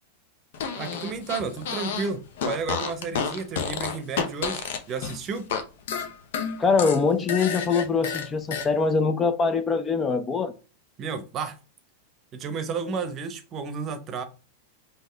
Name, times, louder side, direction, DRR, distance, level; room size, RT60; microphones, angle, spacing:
Fart, 0.5-2.1 2.4-5.6 5.9-8.7, left 6 dB, 55° left, 0.8 m, -30 dB
voice 1, 0.8-5.5 11.0-11.6 12.3-14.2, right 5 dB, 30° right, 0.8 m, -32 dB
voice 2, 6.6-10.5, left 5 dB, 20° left, 0.5 m, -23 dB
5.5 x 2.9 x 3.4 m
figure-of-eight pair, 90°, 0 cm